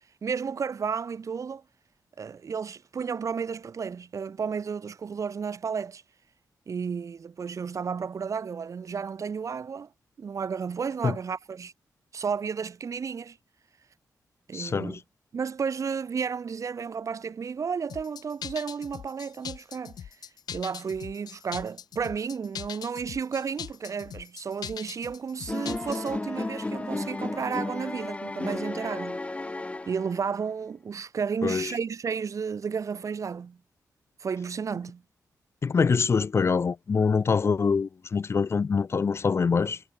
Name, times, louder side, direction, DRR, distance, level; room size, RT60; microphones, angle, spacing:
voice 1, 0.2-1.6 2.2-6.0 6.7-9.9 10.2-11.7 12.1-13.4 14.5-15.0 15.3-20.1 20.5-29.2 29.9-33.6 34.2-35.0, right 6 dB, 50° right, 2.9 m, -32 dB
voice 2, 14.5-15.0 31.4-31.7 35.6-39.8, left 5 dB, 40° left, 0.6 m, -24 dB
sound 1, 17.9-26.2, left 8 dB, 90° left, 3.3 m, -41 dB
sound 2, 25.5-30.4, left 2 dB, 20° left, 1.9 m, -33 dB
wide cardioid pair, 130°, 7 cm